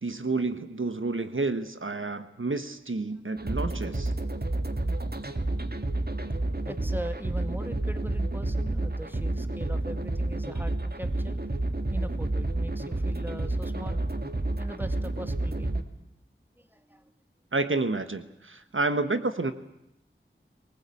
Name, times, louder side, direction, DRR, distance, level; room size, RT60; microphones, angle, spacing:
voice 1, 0.0-4.1 17.5-19.5, right 3 dB, 70° right, 10 dB, 1.4 m, -29 dB
sound 1, 3.4-15.8, right 2 dB, 50° right, 2.0 m, -30 dB
voice 2, 6.6-11.4 11.9-14.0 14.6-15.7 16.6-17.1, equal, 10° right, 9 dB, 2.0 m, -41 dB
23.0 x 19.5 x 8.5 m, 0.84 s
wide cardioid pair, 40°, 21 cm